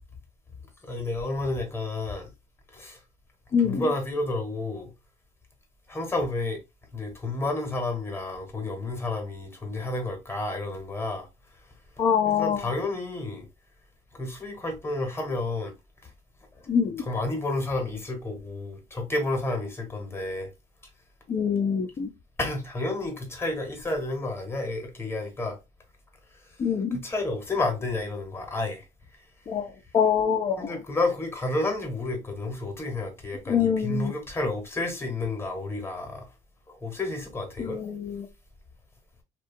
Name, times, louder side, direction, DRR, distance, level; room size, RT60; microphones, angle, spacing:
voice 1, 0.8-2.3 2.7-3.0 3.6-4.9 5.9-6.6 6.9-11.3 12.3-13.5 14.1-15.7 17.0-20.5 22.4-25.6 26.9-28.8 30.6-36.3 36.7-37.8, left 2 dB, 15° left, 0.9 m, -30 dB
voice 2, 3.5-3.9 12.0-12.6 16.7-17.0 21.3-22.1 26.6-27.0 29.5-30.8 33.5-34.1 37.6-38.3, left 7 dB, 35° left, 0.4 m, -25 dB
2.7 x 2.2 x 2.5 m
cardioid pair, 110°, 17 cm